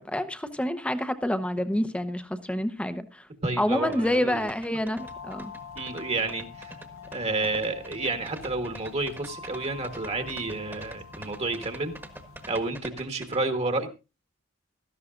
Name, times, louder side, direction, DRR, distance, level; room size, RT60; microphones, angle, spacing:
voice 1, 0.0-3.3 3.6-5.5, left 1 dB, 5° left, 0.8 m, -28 dB
voice 2, 3.4-4.4 5.7-6.7 7.1-11.9 12.5-13.9, right 2 dB, 30° right, 1.4 m, -30 dB
sound 1, 3.9-13.4, right 1 dB, 10° right, 1.3 m, -44 dB
sound 2, 5.0-12.7, left 4 dB, 75° left, 0.8 m, -45 dB
16.5 x 13.0 x 2.5 m
head